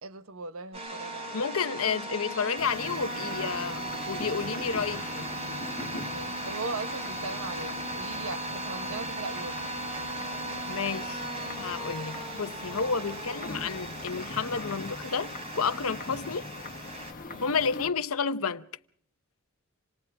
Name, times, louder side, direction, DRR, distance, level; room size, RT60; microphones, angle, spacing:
voice 1, 0.0-1.4 6.0-9.6 17.3-17.6, right 3 dB, 75° right, 1.1 m, -39 dB
sound 1, 0.7-17.1, right 1 dB, 30° right, 6.3 m, -37 dB
voice 2, 1.3-5.3 10.7-11.2 11.6-16.5 17.4-18.7, left 5 dB, 80° left, 0.9 m, -31 dB
sound 2, 2.6-17.9, left 3 dB, 40° left, 1.5 m, -42 dB
27.5 x 27.5 x 3.5 m
head